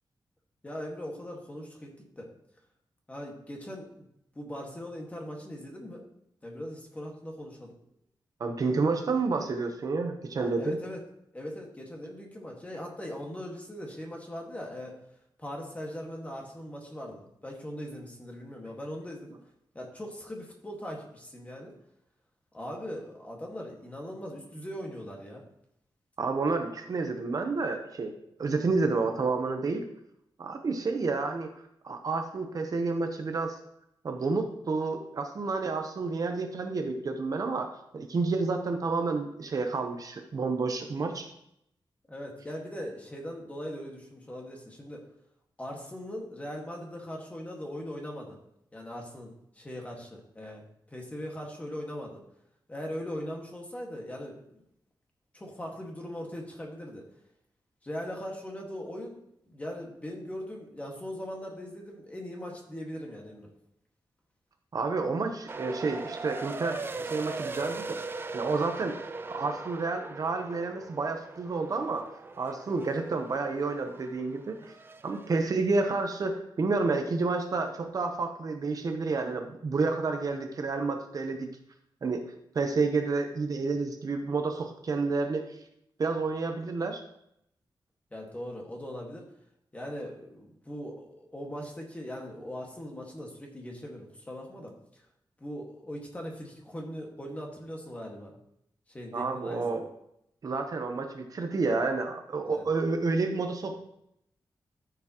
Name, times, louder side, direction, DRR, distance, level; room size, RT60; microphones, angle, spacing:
voice 1, 0.6-2.3 3.1-4.0 4.3-6.0 6.4-7.7 10.4-11.0 11.3-15.0 15.4-19.4 19.7-21.8 22.5-25.4 42.1-45.0 45.6-48.4 48.7-50.6 50.9-52.2 52.7-54.6 55.3-57.1 57.8-59.2 59.5-63.5 88.1-89.2 89.7-95.0 95.4-98.4 98.9-99.8 102.4-102.7, equal, 15° left, 0 dB, 1.7 m, -40 dB
voice 2, 8.4-10.8 26.2-28.1 28.4-29.8 30.4-31.5 31.8-33.5 34.0-41.3 64.7-68.0 68.3-68.9 69.3-72.1 72.4-74.7 75.0-81.5 82.0-82.2 82.5-85.4 86.0-87.0 99.1-99.8 100.4-103.7, right 3 dB, 45° right, 5 dB, 0.9 m, -30 dB
sound 1, 65.5-75.4, right 3 dB, 25° right, 0.4 m, -40 dB
13.0 x 7.1 x 3.0 m, 0.77 s
wide cardioid pair, 175°, 8 cm